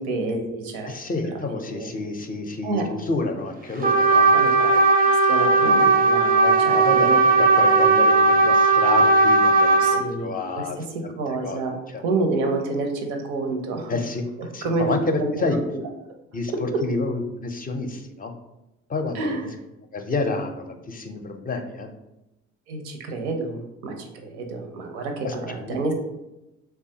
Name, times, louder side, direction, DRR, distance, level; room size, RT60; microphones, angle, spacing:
voice 1, 0.0-0.9 1.2-1.9 2.6-2.8 4.3-4.7 5.1-7.2 9.8-10.9 11.2-13.9 14.6-15.8 19.1-19.4 22.7-25.9, right 3 dB, 90° right, 3 dB, 0.6 m, -28 dB
voice 2, 0.8-4.3 4.6-4.8 6.4-7.1 7.4-10.8 11.0-11.1 11.4-11.6 11.9-12.0 13.9-14.3 14.5-15.6 16.3-18.3 18.9-19.5 19.9-21.9 25.2-25.9, left 3 dB, 30° left, 5 dB, 0.4 m, -29 dB
Trumpet, 3.8-10.0, right 3 dB, 30° right, 0.4 m, -17 dB
3.1 x 2.3 x 2.7 m, 0.94 s
supercardioid pair, 65°, 31 cm